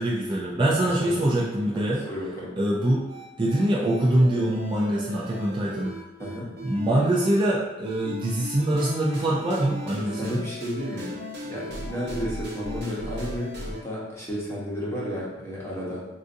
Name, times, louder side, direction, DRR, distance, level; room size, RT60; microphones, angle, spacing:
voice 1, 0.0-2.0 2.6-3.0 3.4-5.9 6.6-10.4, right 1 dB, 25° right, -4 dB, 0.4 m, -24 dB
voice 2, 0.8-1.2 1.7-2.5 6.2-6.5 10.1-11.1 11.4-16.1, equal, 15° left, -6 dB, 0.9 m, -33 dB
sound 1, 3.1-7.5 7.8-13.8, equal, 60° right, 0.8 m, -38 dB
4.0 x 2.5 x 2.5 m, 1.1 s
head